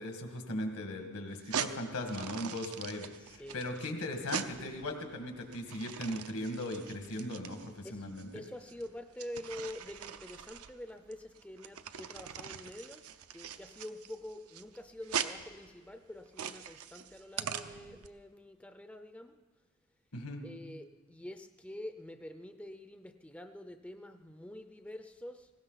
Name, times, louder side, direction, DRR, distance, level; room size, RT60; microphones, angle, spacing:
voice 1, 0.0-8.4 20.1-20.4, left 1 dB, 80° left, 4 dB, 1.9 m, -38 dB
sound 1, 1.3-18.1, right 8 dB, 75° right, 0.7 m, -42 dB
voice 2, 3.2-3.6 7.8-8.1 8.3-19.4 20.4-25.5, left 1 dB, 5° left, 8 dB, 0.5 m, -46 dB
19.0 x 16.5 x 4.0 m, 1.3 s
head